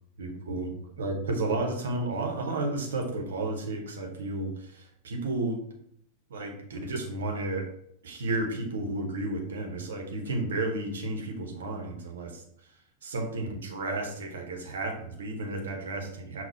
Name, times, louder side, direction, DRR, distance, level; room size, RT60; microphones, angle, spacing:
voice 1, 0.2-5.6 6.3-7.7 8.0-16.4, right 2 dB, 65° right, 3 dB, 0.8 m, -32 dB
5.9 x 2.2 x 4.0 m, 0.68 s
figure-of-eight pair, 90°, 0 cm